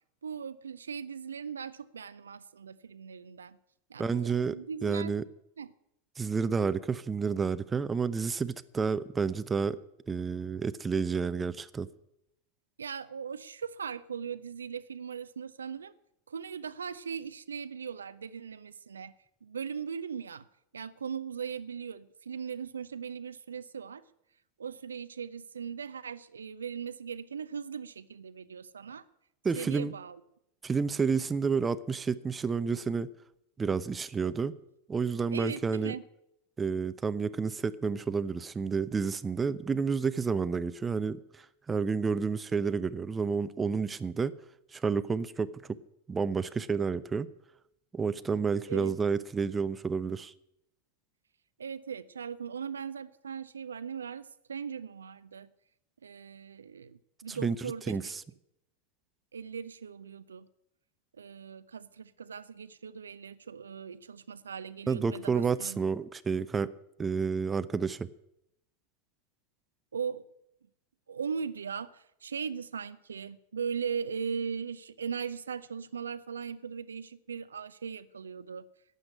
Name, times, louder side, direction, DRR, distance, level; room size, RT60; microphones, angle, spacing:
voice 1, 0.2-3.6 3.9-5.2 5.6-5.7 12.8-15.9 16.3-19.1 19.4-20.5 20.7-24.1 24.6-29.0 29.6-30.2 35.3-36.0 48.7-49.0 51.6-55.5 56.0-58.2 59.3-60.5 61.2-65.8 69.9-70.2 71.1-78.7, right 6 dB, 70° right, 0.5 m, -39 dB
voice 2, 4.0-4.6 4.8-5.2 6.2-9.8 10.1-11.9 29.4-29.9 30.6-33.1 33.6-34.6 34.9-35.9 36.6-44.3 44.7-45.8 46.1-47.3 47.9-50.3 57.3-57.6 57.9-58.1 64.9-66.7 67.0-68.1, right 5 dB, 15° right, 0.5 m, -30 dB
12.0 x 8.0 x 9.8 m
figure-of-eight pair, 90°, 0 cm